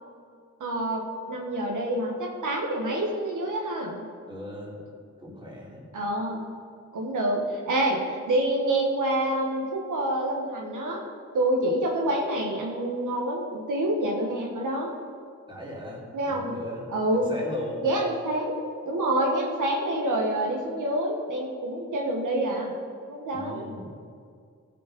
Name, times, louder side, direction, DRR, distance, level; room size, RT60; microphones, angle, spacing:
voice 1, 0.6-4.0 5.9-6.4 6.9-11.0 11.3-14.9 16.1-16.5 16.9-17.3 17.8-18.6 18.9-22.7 23.1-23.7, right 1 dB, 80° right, -1 dB, 1.7 m, -27 dB
voice 2, 4.3-4.8 5.2-5.9 15.5-16.8 17.1-17.9 23.3-23.9, left 1 dB, 15° right, -5 dB, 3.2 m, -38 dB
16.5 x 5.7 x 5.4 m, 2.2 s
wide cardioid pair, 125°, 30 cm